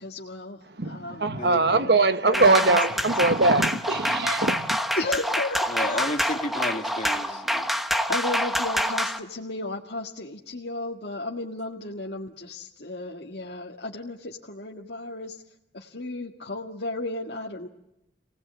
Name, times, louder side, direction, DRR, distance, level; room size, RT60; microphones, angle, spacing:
voice 1, 0.0-2.8 3.2-3.6 5.0-6.1 8.1-15.4 15.7-17.7, left 2 dB, 75° left, 1.9 m, -34 dB
voice 2, 0.8-4.8, right 3 dB, 70° right, 1.3 m, -22 dB
voice 3, 1.4-1.9 5.7-7.7, left 1 dB, 40° left, 2.9 m, -32 dB
sound 1, 2.3-9.2, equal, ahead, 1.2 m, -27 dB
28.5 x 18.5 x 8.7 m
head